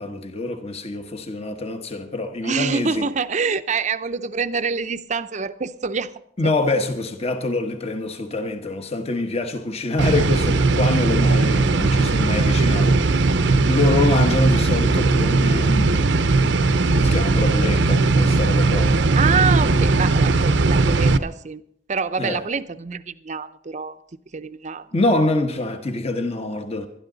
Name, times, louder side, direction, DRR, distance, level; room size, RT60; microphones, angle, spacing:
voice 1, 0.0-3.1 6.4-16.1 16.9-19.0 22.2-22.4 24.9-26.9, left 2 dB, 35° left, 1.2 m, -25 dB
voice 2, 2.4-6.1 6.4-6.5 19.2-21.6 21.9-23.9 24.3-24.9, right 5 dB, 40° right, 0.6 m, -26 dB
sound 1, 10.0-21.2, right 3 dB, 80° right, 0.8 m, -18 dB
20.5 x 12.5 x 4.0 m
head